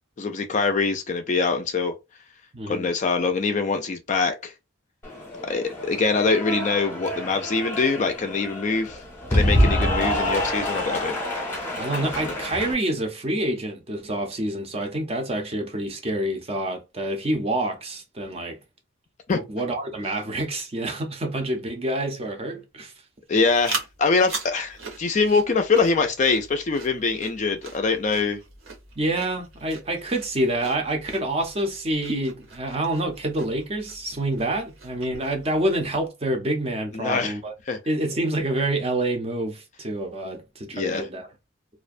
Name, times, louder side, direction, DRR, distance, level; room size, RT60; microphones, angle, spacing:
voice 1, 0.2-1.9 2.7-4.5 5.5-9.0 9.3-11.1 12.0-12.3 19.3-19.4 23.3-28.4 36.9-37.4 37.7-37.8 40.7-41.1, left 4 dB, 35° left, 0.3 m, -24 dB
voice 2, 2.5-2.9 11.7-18.6 19.3-22.9 29.0-37.5 37.9-41.3, right 1 dB, 30° right, 0.5 m, -27 dB
Cheering / Applause, 5.0-12.7, equal, 10° left, 0.7 m, -26 dB
sound 1, 23.3-36.1, right 3 dB, 80° right, 0.9 m, -40 dB
2.4 x 2.1 x 2.5 m
head